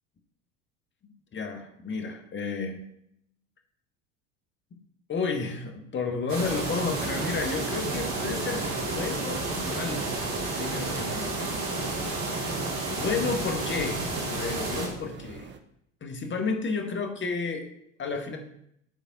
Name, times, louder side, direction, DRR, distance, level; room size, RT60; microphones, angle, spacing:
voice 1, 1.3-2.8 5.1-10.1 10.6-11.4 12.9-14.0 14.3-15.5 16.0-17.7 18.0-18.4, left 4 dB, 30° left, 5 dB, 1.5 m, -31 dB
sound 1, 6.3-14.9, right 2 dB, 75° right, 2.6 m, -31 dB
sound 2, 7.0-15.6, right 5 dB, 30° right, 0.8 m, -42 dB
10.5 x 4.0 x 4.1 m, 0.73 s
hypercardioid pair, 80°, 38 cm